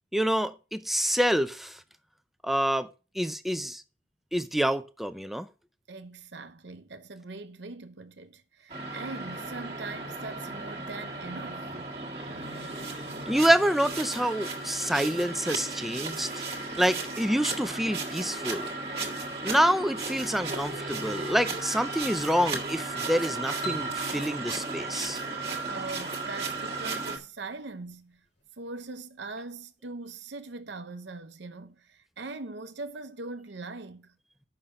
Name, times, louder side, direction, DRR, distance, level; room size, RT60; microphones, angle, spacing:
voice 1, 0.1-1.8 2.4-2.9 3.1-3.8 4.3-5.5 13.3-16.4 16.8-18.7 19.4-25.2, equal, ahead, 0.4 m, -27 dB
voice 2, 5.9-11.8 25.7-28.2 28.6-34.1, right 3 dB, 75° right, 0.8 m, -41 dB
sound 1, 8.7-27.2, right 3 dB, 30° right, 1.7 m, -35 dB
sound 2, 23.6-26.3, equal, 70° left, 2.3 m, -43 dB
6.7 x 5.7 x 6.5 m
head